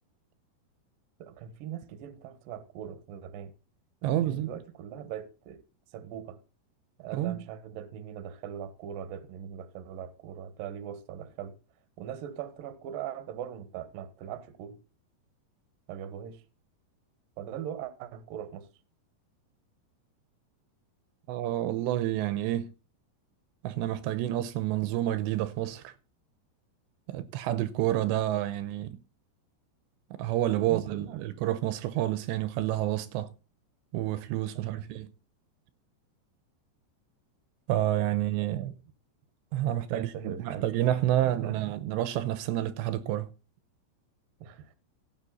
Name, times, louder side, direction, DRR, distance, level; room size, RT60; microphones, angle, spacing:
voice 1, 1.2-3.5 4.0-5.6 5.9-6.4 7.0-11.6 12.0-14.8 15.9-16.4 17.4-18.7 30.6-31.2 34.5-34.9 38.5-38.7 39.7-40.6 41.2-41.6 44.4-44.8, right 9 dB, 65° right, 2.5 m, -40 dB
voice 2, 4.0-4.5 7.1-7.4 21.3-22.7 23.6-25.9 27.1-29.0 30.2-33.3 33.9-35.1 37.7-38.7 39.5-43.3, right 13 dB, 80° right, 2.9 m, -29 dB
16.0 x 7.4 x 4.1 m
omnidirectional pair, 5.1 m